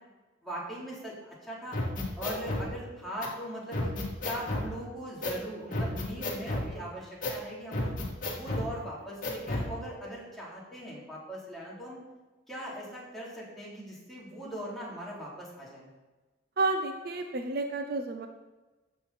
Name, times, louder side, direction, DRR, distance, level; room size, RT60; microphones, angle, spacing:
voice 1, 0.4-1.8 2.2-3.9 4.2-8.0 8.3-12.0 12.5-15.9, equal, ahead, -7 dB, 3.5 m, -40 dB
sound 1, 1.7-2.7 3.2-3.3 3.7-4.7 5.2-5.4 5.7-6.7 7.2-7.4 7.7-8.7 9.2-9.7, left 1 dB, 45° left, 2.2 m, -32 dB
voice 2, 16.6-18.3, right 3 dB, 55° right, 6 dB, 0.7 m, -30 dB
14.5 x 7.1 x 4.3 m, 1.2 s
head